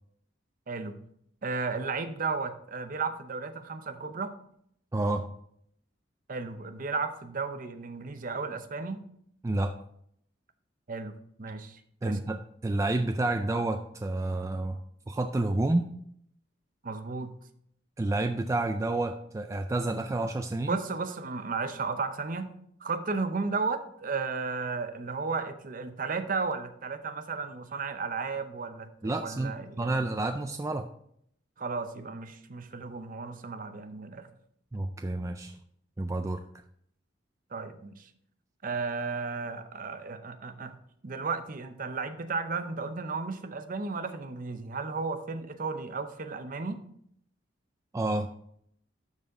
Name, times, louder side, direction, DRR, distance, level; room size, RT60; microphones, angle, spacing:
voice 1, 0.7-1.0 1.4-4.3 6.3-9.0 10.9-12.2 16.8-17.3 20.6-22.5 22.8-30.0 31.6-34.3 37.5-38.1 38.6-40.8 41.0-46.8, right 4 dB, 45° right, 9 dB, 0.6 m, -34 dB
voice 2, 4.9-5.3 9.4-9.7 12.0-14.8 15.1-15.9 18.0-20.8 29.0-30.9 34.7-35.6 36.0-36.4 47.9-48.3, right 2 dB, 15° right, 6 dB, 0.3 m, -29 dB
12.0 x 4.1 x 3.7 m, 0.69 s
head